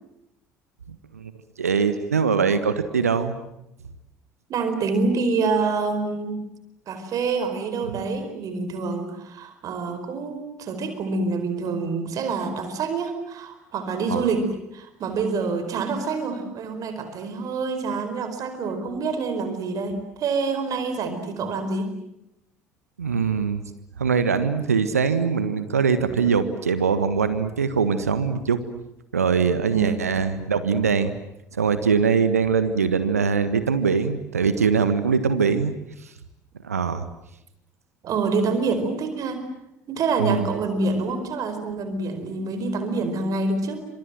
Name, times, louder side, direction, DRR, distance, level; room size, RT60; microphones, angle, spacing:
voice 1, 1.6-3.3 14.1-14.3 23.0-23.6 24.0-28.6 29.1-31.1 31.6-35.7 36.6-37.0 40.2-40.5, right 6 dB, 80° right, 12 dB, 1.5 m, -22 dB
voice 2, 4.5-6.4 6.9-21.9 29.6-30.0 38.0-39.4 39.9-43.9, right 4 dB, 45° right, 8 dB, 4.8 m, -26 dB
28.5 x 26.5 x 7.7 m, 0.84 s
figure-of-eight pair, 60°, 8 cm